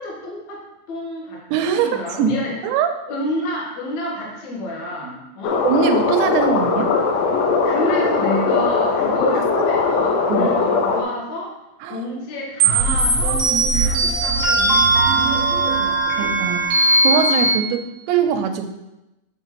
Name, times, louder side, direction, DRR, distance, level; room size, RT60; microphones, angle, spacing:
voice 1, 0.0-1.4 1.8-2.5 3.1-5.6 7.6-11.6 11.9-13.5 13.7-16.3, left 1 dB, 65° left, -3 dB, 1.9 m, -29 dB
voice 2, 1.5-2.9 5.0-5.2 5.6-6.9 9.6-9.7 10.3-10.5 11.8-12.1 16.2-16.7 17.0-18.7, right 7 dB, 85° right, 6 dB, 2.8 m, -22 dB
sound 1, 5.4-11.0, left 4 dB, 90° left, 2.9 m, -19 dB
sound 2, 12.6-17.5, right 3 dB, 55° right, 1.7 m, -18 dB
7.9 x 5.9 x 2.9 m, 0.94 s
omnidirectional pair, 5.1 m